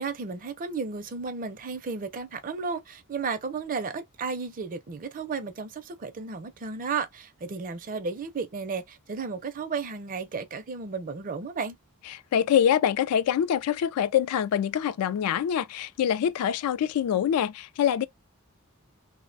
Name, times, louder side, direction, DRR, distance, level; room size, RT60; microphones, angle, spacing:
voice 1, 0.0-11.8, right 5 dB, 40° right, 0.4 m, -33 dB
voice 2, 12.1-18.0, left 9 dB, 85° left, 0.3 m, -25 dB
2.4 x 2.1 x 2.5 m
head